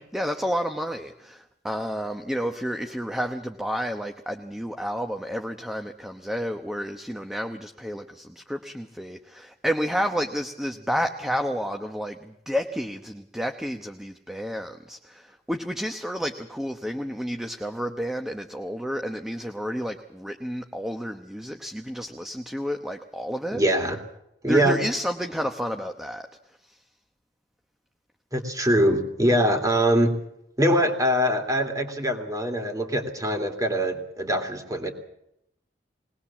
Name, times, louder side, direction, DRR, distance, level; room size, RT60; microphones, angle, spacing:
voice 1, 0.1-23.6 24.5-26.3 26.6-26.8, equal, ahead, 5 dB, 0.9 m, -30 dB
voice 2, 23.5-24.0 24.4-24.8 28.3-30.2 30.6-34.9, equal, 20° right, 5 dB, 2.7 m, -23 dB
21.0 x 19.0 x 7.2 m, 0.80 s
head